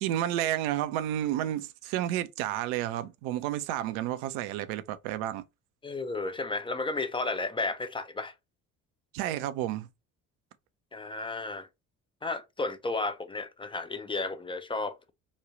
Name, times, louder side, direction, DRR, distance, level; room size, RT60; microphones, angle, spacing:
voice 1, 0.0-5.4 9.1-9.9, right 12 dB, 70° right, 0.5 m, -31 dB
voice 2, 5.8-8.3 10.9-11.7 12.2-15.1, left 3 dB, 15° left, 0.4 m, -33 dB
3.1 x 2.3 x 3.7 m
hypercardioid pair, 55°, 43 cm